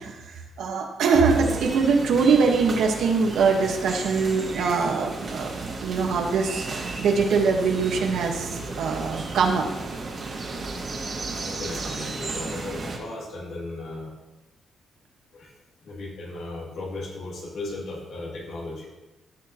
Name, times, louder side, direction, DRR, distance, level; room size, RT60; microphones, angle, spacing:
voice 1, 0.0-5.5 5.8-8.5 8.8-9.7, right 5 dB, 80° right, 2 dB, 1.5 m, -23 dB
sound 1, 1.2-13.0, right 3 dB, 45° right, 2.1 m, -34 dB
voice 2, 11.3-14.1 15.3-15.5 15.8-18.9, left 2 dB, 75° left, -3 dB, 2.9 m, -36 dB
15.0 x 6.5 x 3.1 m, 1.1 s
cardioid pair, 100°, 0 cm